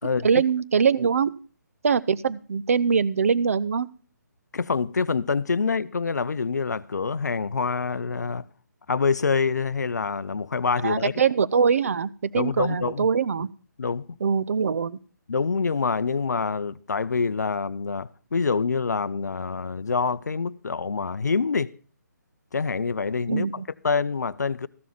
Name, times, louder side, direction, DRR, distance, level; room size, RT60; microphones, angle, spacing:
voice 1, 0.2-1.3 1.8-3.9 10.8-13.5 14.2-15.0 23.3-23.6, right 6 dB, 50° right, 0.5 m, -23 dB
voice 2, 4.5-8.5 8.9-11.1 12.3-13.1 13.8-14.1 15.3-21.7 22.5-24.7, left 5 dB, 65° left, 0.5 m, -26 dB
14.0 x 7.0 x 5.7 m
figure-of-eight pair, 145°, 10 cm